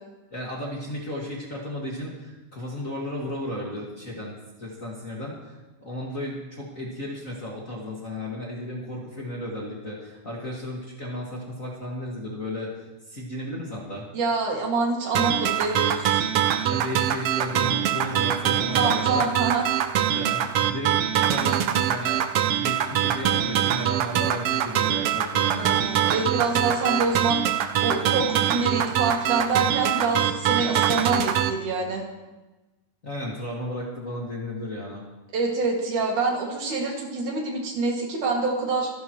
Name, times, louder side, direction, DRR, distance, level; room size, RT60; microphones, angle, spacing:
voice 1, 0.3-12.7 13.1-14.0 16.7-19.2 20.1-26.1 33.0-35.0, left 1 dB, 30° left, -4 dB, 2.0 m, -34 dB
voice 2, 14.1-16.3 18.5-19.7 25.5-27.4 27.8-32.0 35.3-38.9, right 3 dB, 70° right, -1 dB, 3.8 m, -26 dB
sound 1, 15.1-31.5, right 10 dB, 90° right, 1.3 m, -24 dB
25.0 x 11.0 x 3.1 m, 1.1 s
omnidirectional pair, 3.6 m